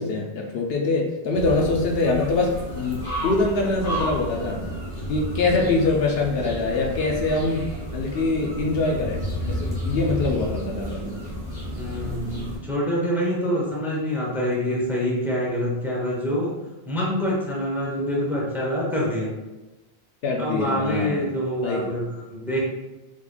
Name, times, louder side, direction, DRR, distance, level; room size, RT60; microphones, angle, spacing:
voice 1, 0.0-4.6 5.1-7.6 7.9-9.2 9.5-11.1 20.2-21.2 21.6-22.0, left 3 dB, 70° left, 0 dB, 0.8 m, -24 dB
sound 1, 1.3-12.6, equal, 40° left, 1.2 m, -31 dB
voice 2, 11.7-16.5 16.9-19.3 20.4-22.6, equal, ahead, -5 dB, 0.7 m, -26 dB
3.7 x 3.2 x 2.3 m, 1.1 s
omnidirectional pair, 1.1 m